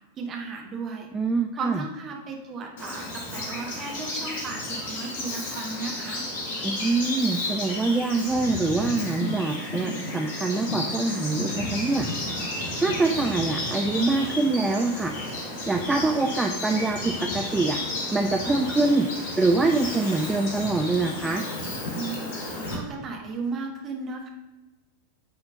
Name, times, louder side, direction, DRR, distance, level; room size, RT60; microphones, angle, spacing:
voice 1, 0.2-1.1 1.6-6.3 21.9-24.3, right 4 dB, 30° right, 2 dB, 1.1 m, -35 dB
voice 2, 1.1-1.8 6.6-12.1 12.8-15.1 15.7-17.8 18.1-19.1 19.3-21.4, right 3 dB, 10° right, 4 dB, 0.4 m, -24 dB
Bird vocalization bird call bird song, 2.8-22.7, left 1 dB, 50° left, 1.6 m, -32 dB
8.5 x 4.3 x 2.6 m, 1.1 s
figure-of-eight pair, 90°, 0 cm